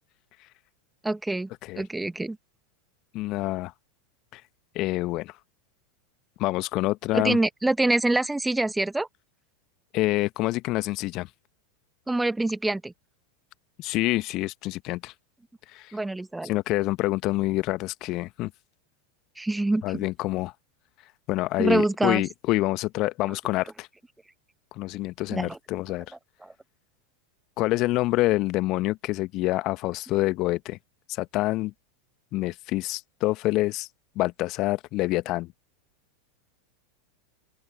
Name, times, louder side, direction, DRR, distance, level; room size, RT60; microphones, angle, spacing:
voice 1, 1.0-1.5 1.8-2.4 7.1-9.1 12.1-12.9 15.9-16.5 19.4-20.0 21.6-22.2 25.3-25.6 26.4-26.5, right 2 dB, 5° right, 1.6 m, -25 dB
voice 2, 3.1-3.7 4.3-4.4 4.7-5.3 6.4-7.4 9.9-11.3 13.8-15.1 15.7-15.9 16.4-18.5 19.8-20.5 21.3-23.9 24.7-26.0 27.6-30.8 31.1-31.7 32.3-33.9 34.1-35.5, left 19 dB, 45° left, 1.3 m, -27 dB
open air
figure-of-eight pair, 90°, 0 cm